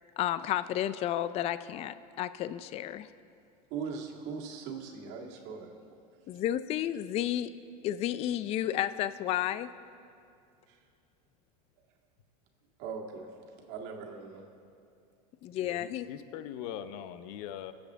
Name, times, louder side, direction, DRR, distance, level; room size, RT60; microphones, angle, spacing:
voice 1, 0.2-3.1 6.3-7.5 7.8-9.7 15.4-16.1, left 12 dB, 30° left, 14 dB, 0.4 m, -32 dB
voice 2, 3.7-6.0 6.3-6.4 10.7-10.9 12.8-14.5, right 5 dB, 55° right, 0 dB, 2.0 m, -41 dB
voice 3, 15.6-17.7, left 10 dB, 60° left, 11 dB, 0.8 m, -41 dB
22.5 x 7.8 x 3.6 m, 2.4 s
supercardioid pair, 120°, 20 cm